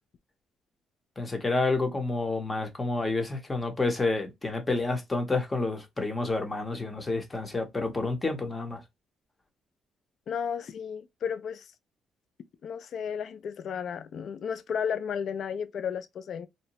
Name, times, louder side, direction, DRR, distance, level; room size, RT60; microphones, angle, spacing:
voice 1, 1.2-8.8, left 3 dB, 20° left, 0.7 m, -29 dB
voice 2, 10.3-11.7 12.6-16.5, left 7 dB, 60° left, 0.3 m, -33 dB
2.7 x 2.0 x 2.8 m
cardioid pair, 110°, 0 cm